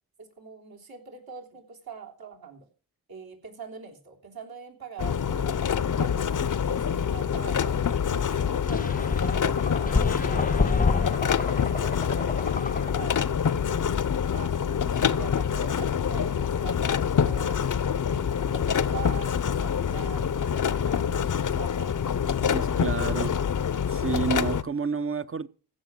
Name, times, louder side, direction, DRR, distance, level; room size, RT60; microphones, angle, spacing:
voice 1, 0.2-2.7 3.1-9.0 9.3-13.4 14.3-17.6 18.1-21.9, right 6 dB, 70° right, 3.3 m, -44 dB
sound 1, 5.0-24.6, left 7 dB, 55° left, 0.8 m, -26 dB
sound 2, 8.7-13.2, left 4 dB, 20° left, 0.6 m, -28 dB
voice 2, 22.5-23.4 23.9-25.5, right 6 dB, 35° right, 0.9 m, -30 dB
15.5 x 6.1 x 6.1 m
cardioid pair, 55°, 38 cm